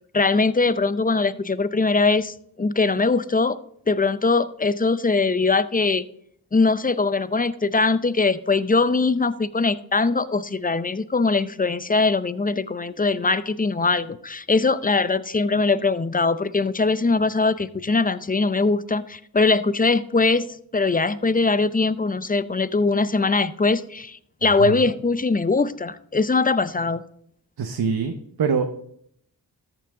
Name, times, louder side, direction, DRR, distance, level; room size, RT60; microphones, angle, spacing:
voice 1, 0.1-3.6 3.9-6.0 6.5-27.0, left 3 dB, 20° left, 15 dB, 0.6 m, -21 dB
voice 2, 27.6-28.1 28.4-28.7, right 6 dB, 60° right, 5 dB, 1.0 m, -23 dB
13.5 x 5.9 x 3.8 m, 0.68 s
cardioid pair, 45°, 42 cm